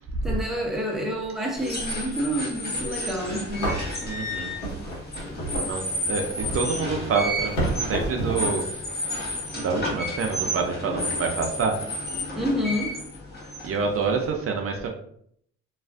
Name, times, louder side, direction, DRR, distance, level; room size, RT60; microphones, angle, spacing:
voice 1, 0.2-3.7 12.3-12.9, equal, ahead, 0.5 m, -28 dB
sound 1, 1.5-14.3, left 1 dB, 35° left, 0.9 m, -32 dB
sound 2, 3.0-3.1 3.6-8.6, right 1 dB, 75° left, 1.2 m, -31 dB
voice 2, 4.0-4.5 5.6-8.8 9.5-11.8 13.6-14.9, right 5 dB, 50° right, 0.4 m, -27 dB
2.4 x 2.3 x 2.3 m
cardioid pair, 90°, 30 cm